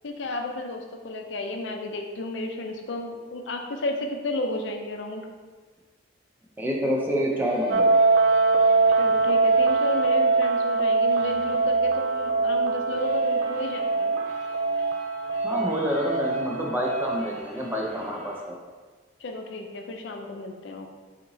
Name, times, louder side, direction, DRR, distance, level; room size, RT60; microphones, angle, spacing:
voice 1, 0.0-5.3 8.9-14.2 19.2-20.9, left 2 dB, 80° left, 3 dB, 0.5 m, -33 dB
voice 2, 6.6-7.9 15.4-18.6, equal, 10° right, -2 dB, 0.5 m, -27 dB
sound 1, 7.3-18.4, right 1 dB, 20° left, 1.3 m, -46 dB
sound 2, 7.7-17.4, right 3 dB, 75° right, 0.4 m, -23 dB
6.7 x 2.8 x 2.7 m, 1.4 s
head